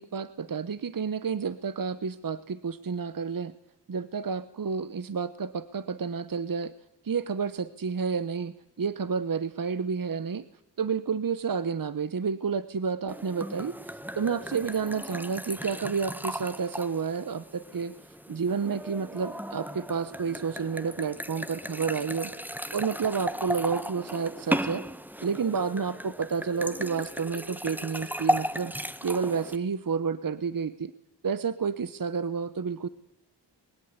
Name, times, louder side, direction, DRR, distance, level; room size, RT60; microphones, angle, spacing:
voice 1, 0.0-3.5 3.9-6.7 7.0-10.4 10.8-17.9 18.3-22.3 22.7-24.8 25.2-28.7 29.0-30.9 31.2-32.9, right 5 dB, 50° right, 14 dB, 1.1 m, -30 dB
sound 1, 13.1-29.6, equal, 5° right, 1.1 m, -35 dB
21.5 x 16.0 x 9.7 m, 0.85 s
cardioid pair, 60°, 44 cm